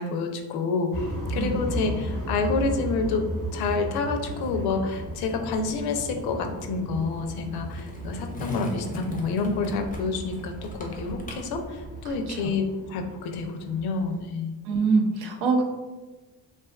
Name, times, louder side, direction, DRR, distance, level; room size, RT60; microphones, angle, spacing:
voice 1, 0.0-3.3 3.5-14.6, left 4 dB, 70° left, 5 dB, 0.5 m, -28 dB
sound 1, 0.9-14.2, right 1 dB, 35° right, 0.9 m, -36 dB
Skateboard, 4.5-12.5, left 1 dB, 20° left, 0.5 m, -41 dB
voice 2, 12.0-12.5 14.6-15.6, right 4 dB, 70° right, 1 dB, 0.6 m, -24 dB
2.5 x 2.3 x 2.3 m, 1.2 s
supercardioid pair, 75°, 39 cm